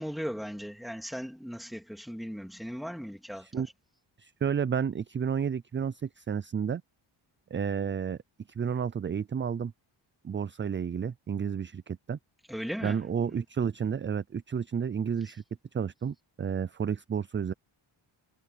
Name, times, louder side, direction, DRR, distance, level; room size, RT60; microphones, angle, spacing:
voice 1, 0.0-3.5 12.5-13.0 13.3-13.4, equal, ahead, 2.8 m, -37 dB
voice 2, 3.4-3.7 4.2-6.8 7.5-8.2 8.6-9.7 10.2-12.2 12.8-15.4 15.7-17.5, right 7 dB, 25° right, 0.3 m, -31 dB
wide cardioid pair, 110°, 47 cm